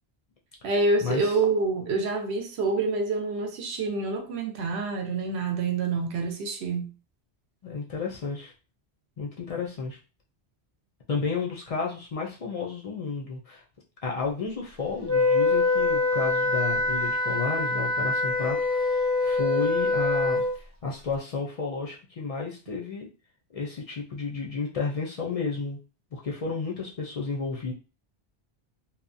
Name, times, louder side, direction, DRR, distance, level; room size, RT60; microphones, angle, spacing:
voice 1, 0.6-6.9, right 3 dB, 80° right, 4 dB, 0.9 m, -27 dB
voice 2, 7.6-8.5 9.2-10.0 11.1-13.6 14.0-23.1 23.5-25.8 26.1-27.7, left 4 dB, 50° left, -1 dB, 0.4 m, -32 dB
Wind instrument woodwind instrument, 15.1-20.5, left 3 dB, 40° right, 0.3 m, -24 dB
2.8 x 2.0 x 2.5 m, 0.33 s
omnidirectional pair, 1.1 m